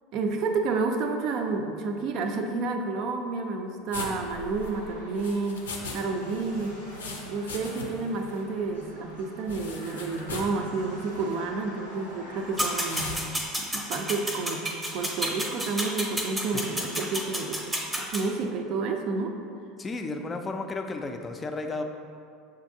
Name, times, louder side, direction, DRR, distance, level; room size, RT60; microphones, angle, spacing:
voice 1, 0.1-5.6 5.9-6.8 7.2-13.2 13.6-17.6 18.0-19.4, right 3 dB, 50° right, 5 dB, 0.4 m, -30 dB
sound 1, 3.9-6.0 6.3-8.1 8.4-8.5 9.5-10.6 11.1-11.3 12.8-13.2, left 4 dB, 80° left, 0.5 m, -39 dB
sound 2, 4.2-13.0, equal, 85° right, 0.9 m, -44 dB
sound 3, 12.6-18.2, equal, 10° right, 0.7 m, -31 dB
voice 2, 19.8-21.8, left 3 dB, 20° left, 4 dB, 0.4 m, -33 dB
6.8 x 2.5 x 2.7 m, 2.3 s
figure-of-eight pair, 75°, 0 cm